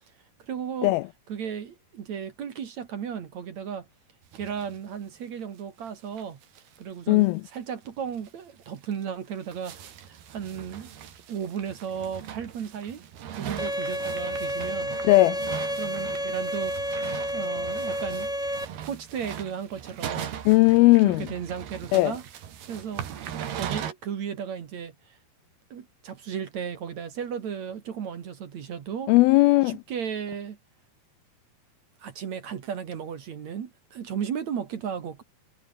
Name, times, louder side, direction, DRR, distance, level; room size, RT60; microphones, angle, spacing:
voice 1, 0.4-0.9 1.3-3.9 4.3-6.4 6.8-10.9 11.3-13.0 13.4-14.9 15.8-16.7 17.3-18.3 18.8-20.4 21.0-22.2 22.7-23.0 23.5-25.2 25.7-29.1 29.7-30.6 32.0-35.2, right 7 dB, 50° right, 2.7 m, -35 dB
sound 1, 4.3-4.8 5.1-5.2 5.4-5.5 5.9-6.0 6.2-6.8 7.1-7.2 7.5-7.6 8.1-8.3 8.9-23.9, right 9 dB, 70° right, 4.3 m, -39 dB
voice 2, 7.1-7.4 15.0-15.4 20.5-21.3 21.9-22.1 29.1-29.8, left 20 dB, 80° left, 2.2 m, -18 dB
Bowed string instrument, 13.6-18.6, equal, ahead, 3.1 m, -30 dB
omnidirectional pair, 4.7 m